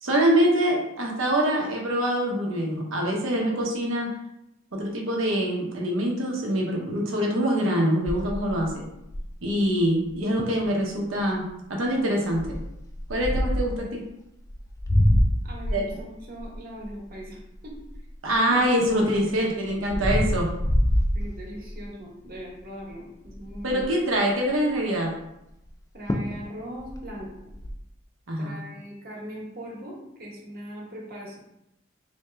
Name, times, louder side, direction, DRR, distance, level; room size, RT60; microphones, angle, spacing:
voice 1, 0.0-4.1 4.7-8.8 9.4-11.4 11.7-12.6 13.1-14.0 15.7-15.9 18.2-20.5 23.6-25.1 28.3-28.6, equal, 85° right, -1 dB, 0.8 m, -24 dB
sound 1, 8.1-9.5 10.1-10.2 10.4-10.7 11.2-11.5 12.3-13.8 14.5-18.4 18.8-21.9 22.3-22.6 22.9-23.0 23.3-24.0 25.7-25.8 26.1-26.4 26.7-27.7, equal, 15° left, 0.3 m, -26 dB
voice 2, 15.4-17.7 18.5-18.6 19.4-19.6 21.1-24.0 25.9-27.5 28.4-31.4, equal, 50° right, -3 dB, 1.1 m, -40 dB
3.3 x 2.7 x 3.3 m, 0.84 s
head